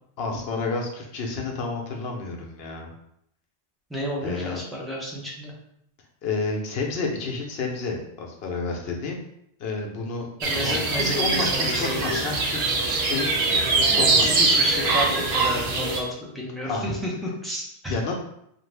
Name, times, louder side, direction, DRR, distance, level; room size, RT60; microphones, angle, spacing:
voice 1, 0.2-2.9 4.2-4.6 6.2-9.2 9.6-10.3 10.5-12.6 12.9-14.4 16.6-16.9 17.9-18.1, left 3 dB, 70° left, 1 dB, 0.8 m, -30 dB
voice 2, 3.9-5.5 10.4-12.3 13.9-18.0, equal, ahead, -5 dB, 0.5 m, -31 dB
sound 1, 10.4-16.0, right 3 dB, 70° right, 0.8 m, -23 dB
2.6 x 2.4 x 3.3 m, 0.74 s
omnidirectional pair, 1.1 m